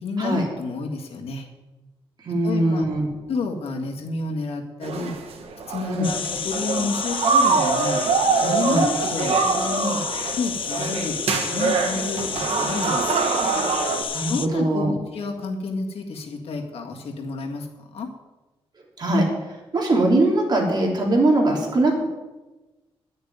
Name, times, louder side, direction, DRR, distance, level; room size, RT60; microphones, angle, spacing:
voice 1, 0.0-1.5 2.4-2.8 3.3-5.1 5.7-8.0 8.4-10.0 10.4-11.2 11.5-13.2 14.3-17.7 17.9-18.1, left 4 dB, 80° left, 2 dB, 1.8 m, -30 dB
voice 2, 2.2-3.1 5.9-6.1 8.6-8.8 14.1-14.9 19.0-19.3 19.7-22.0, right 1 dB, 45° right, -1 dB, 3.2 m, -21 dB
sound 1, 4.8-14.0, right 5 dB, 85° right, 1.6 m, -24 dB
sound 2, 6.0-14.5, left 7 dB, 60° left, 0.6 m, -30 dB
11.0 x 6.6 x 9.3 m, 1.1 s
wide cardioid pair, 150°, 10 cm